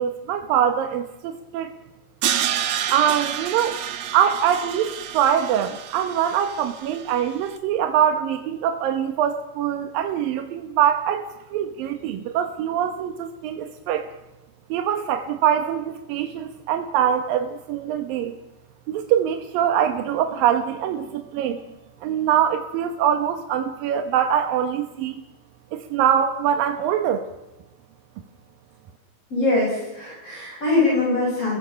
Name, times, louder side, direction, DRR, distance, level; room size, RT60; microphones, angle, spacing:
voice 1, 0.0-1.7 2.9-3.8 4.1-14.1 14.7-18.4 18.9-21.6 22.0-25.2 25.7-27.2, right 9 dB, 90° right, 7 dB, 2.8 m, -23 dB
Crash cymbal, 2.2-7.3, right 10 dB, 60° right, 1.9 m, -29 dB
voice 2, 29.3-31.6, left 2 dB, 40° left, -5 dB, 7.8 m, -22 dB
30.0 x 21.5 x 5.7 m, 1.0 s
omnidirectional pair, 3.9 m